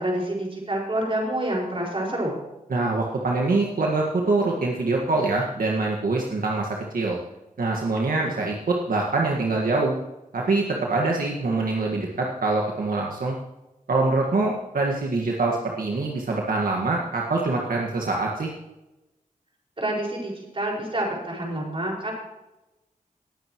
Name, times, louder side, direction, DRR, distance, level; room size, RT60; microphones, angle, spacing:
voice 1, 0.0-2.4 19.8-22.1, right 1 dB, 40° right, -2 dB, 5.3 m, -27 dB
voice 2, 2.7-7.2 7.6-10.0 10.3-13.4 13.9-18.5, right 3 dB, 80° right, -1 dB, 1.7 m, -24 dB
19.5 x 9.2 x 3.1 m, 0.97 s
wide cardioid pair, 80°, 15 cm